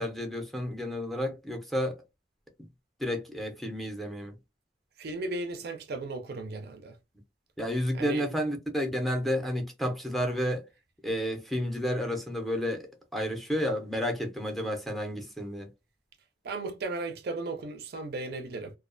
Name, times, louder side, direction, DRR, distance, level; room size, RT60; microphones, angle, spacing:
voice 1, 0.0-2.0 3.0-4.4 7.6-10.6 11.0-12.8 13.1-15.7, equal, ahead, 0.5 m, -31 dB
voice 2, 5.0-6.9 7.9-8.3 16.4-18.7, right 2 dB, 60° right, 0.4 m, -35 dB
2.3 x 2.2 x 2.4 m
head